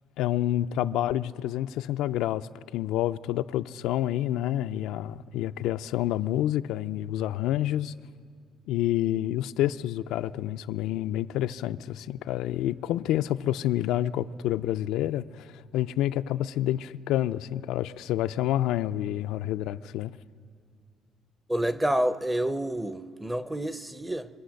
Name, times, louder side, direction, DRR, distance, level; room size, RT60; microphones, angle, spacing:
voice 1, 0.2-7.9 8.7-15.5 15.7-20.1, left 13 dB, 85° left, 0.3 m, -28 dB
voice 2, 21.5-24.3, right 1 dB, 10° right, 0.5 m, -28 dB
25.0 x 8.4 x 6.4 m
cardioid pair, 140°, 0 cm